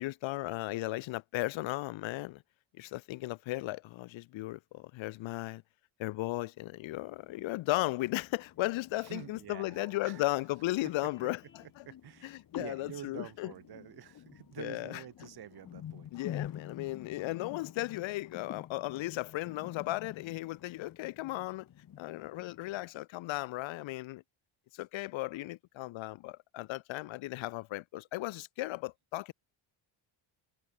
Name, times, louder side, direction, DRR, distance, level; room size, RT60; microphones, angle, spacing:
voice 1, 0.0-2.4 2.8-5.6 6.0-11.8 12.2-13.5 14.6-15.0 16.1-21.7 22.0-24.2 24.7-29.3, left 18 dB, 75° left, 0.8 m, -36 dB
sound 1, 6.9-22.9, left 10 dB, 45° left, 2.6 m, -49 dB
voice 2, 9.0-10.3 11.2-11.3 11.8-16.1, right 11 dB, 50° right, 4.9 m, -48 dB
Vehicle horn car horn honking, 11.0-11.8, left 5 dB, 25° left, 4.4 m, -63 dB
cardioid pair, 180°, 47 cm